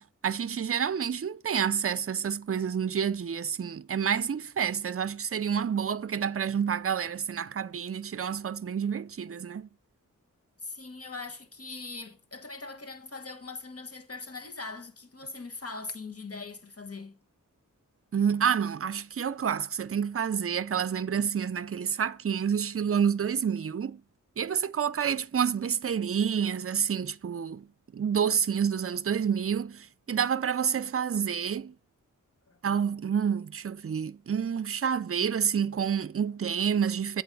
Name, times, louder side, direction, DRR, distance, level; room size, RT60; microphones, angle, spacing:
voice 1, 0.0-9.7 18.1-24.0 24.4-27.7 27.9-31.7 32.6-37.2, right 7 dB, 45° right, 0.5 m, -28 dB
voice 2, 10.6-17.2 32.5-32.6, left 3 dB, 45° left, 1.4 m, -41 dB
8.1 x 4.1 x 6.6 m
cardioid pair, 45°, 32 cm